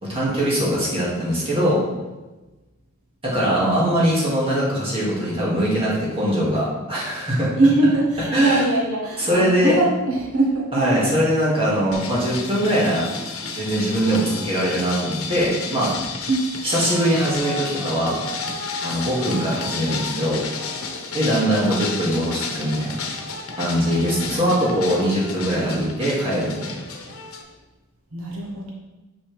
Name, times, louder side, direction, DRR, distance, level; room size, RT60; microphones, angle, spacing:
voice 1, 0.0-1.8 3.2-7.5 8.3-8.7 9.2-9.7 10.7-13.1 13.6-15.9 16.6-18.2 18.8-20.4 21.1-23.0 23.6-26.8, equal, 25° right, -7 dB, 2.3 m, -22 dB
voice 2, 3.4-3.8 7.5-11.2 16.3-16.5 21.6-21.8 24.0-24.2 28.1-28.7, right 2 dB, 80° right, -2 dB, 1.2 m, -22 dB
sound 1, 11.9-27.4, left 4 dB, 85° left, 1.0 m, -32 dB
7.2 x 5.8 x 3.5 m, 1.1 s
head